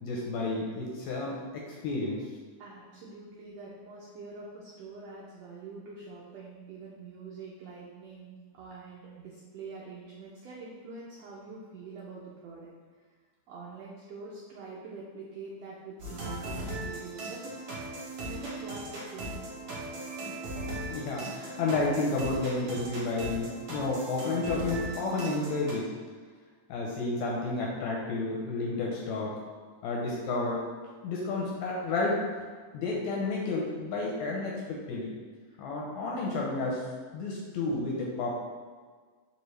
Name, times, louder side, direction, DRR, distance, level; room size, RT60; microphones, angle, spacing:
voice 1, 0.0-2.2 20.9-25.9 26.7-29.4 29.8-30.6 31.0-32.2 32.7-35.1 35.6-36.8 37.1-38.4, left 3 dB, 80° left, -3 dB, 1.7 m, -31 dB
voice 2, 2.6-12.7 13.5-17.8 18.2-19.4 23.9-24.0, right 4 dB, 85° right, -5 dB, 1.4 m, -45 dB
sound 1, 16.0-25.7, right 1 dB, 60° right, 1.5 m, -38 dB
4.8 x 2.7 x 3.1 m, 1.5 s
omnidirectional pair, 3.5 m